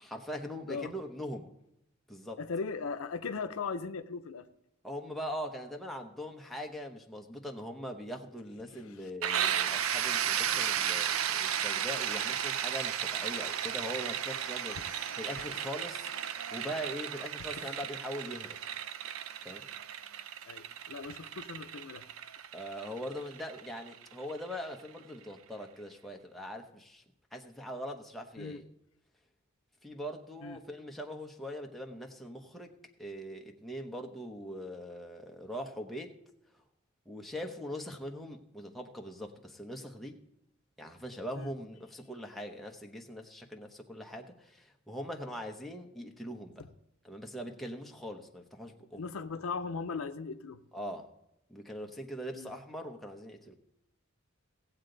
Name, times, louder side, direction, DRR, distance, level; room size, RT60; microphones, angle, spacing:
voice 1, 0.0-1.5 2.1-2.4 4.8-14.8 15.2-18.6 19.4-19.6 22.5-27.0 27.3-28.6 29.8-36.2 37.1-40.2 40.8-46.6 47.0-49.0 50.7-51.1 51.5-53.5, equal, ahead, 0.9 m, -41 dB
voice 2, 2.4-4.5 8.7-9.0 12.4-12.5 14.7-15.1 15.4-15.7 17.4-17.7 20.4-22.0 28.4-28.6 30.4-30.6 41.4-41.5 46.6-46.7 48.9-50.6 52.3-52.5, left 5 dB, 85° left, 0.6 m, -39 dB
sound 1, 9.2-24.8, right 9 dB, 75° right, 0.5 m, -34 dB
17.0 x 7.9 x 3.9 m
head